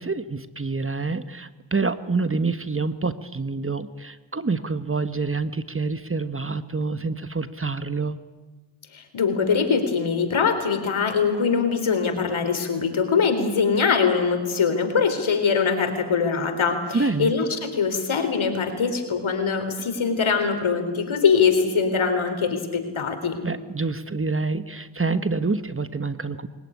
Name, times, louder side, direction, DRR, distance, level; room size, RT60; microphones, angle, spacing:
voice 1, 0.0-8.2 16.9-17.3 23.4-26.5, right 4 dB, 25° right, 12 dB, 1.3 m, -27 dB
voice 2, 8.9-23.4, left 5 dB, 70° left, 7 dB, 3.9 m, -22 dB
21.0 x 18.5 x 9.8 m, 1.3 s
cardioid pair, 50°, 49 cm